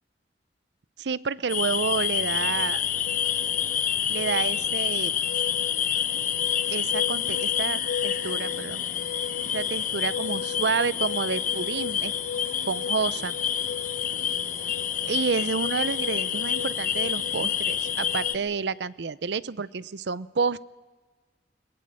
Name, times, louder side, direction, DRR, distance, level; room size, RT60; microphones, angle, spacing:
voice 1, 1.0-2.8 4.1-5.1 6.7-8.8 9.5-12.1 12.7-13.3 15.0-20.6, right 5 dB, 75° right, 18 dB, 0.6 m, -29 dB
sound 1, 1.5-18.4, left 9 dB, 45° left, 1.0 m, -28 dB
sound 2, 2.1-18.6, left 7 dB, 75° left, 0.9 m, -38 dB
21.5 x 21.5 x 7.6 m, 1.3 s
head